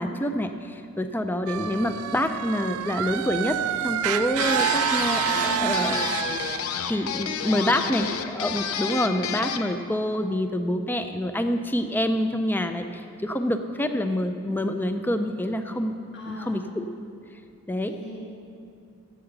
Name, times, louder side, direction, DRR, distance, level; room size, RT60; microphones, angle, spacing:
voice 1, 0.0-3.6 3.8-6.1 6.5-15.9 16.2-16.9 17.7-17.9, left 1 dB, 10° left, 8 dB, 0.4 m, -27 dB
sound 1, 1.5-6.6, right 9 dB, 80° right, 0.4 m, -27 dB
sound 2, 4.4-9.7, left 7 dB, 75° left, 0.6 m, -31 dB
voice 2, 5.3-5.9 7.4-8.1 16.1-16.6 17.8-18.2, left 1 dB, 50° left, -4 dB, 2.3 m, -39 dB
15.5 x 7.7 x 4.0 m, 2.5 s
head